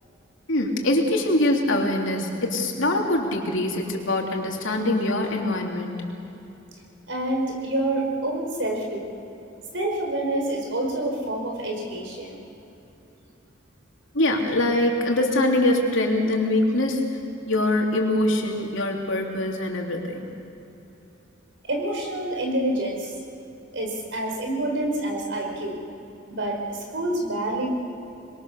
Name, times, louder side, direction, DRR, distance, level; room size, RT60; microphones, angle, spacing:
voice 1, 0.5-6.0 14.1-17.0 17.5-20.2, left 1 dB, 75° left, 1 dB, 3.2 m, -23 dB
voice 2, 7.1-9.1 9.7-12.4 21.7-23.1 23.7-25.8 26.3-27.7, right 1 dB, 65° right, 1 dB, 4.7 m, -27 dB
26.5 x 22.0 x 6.6 m, 2.9 s
head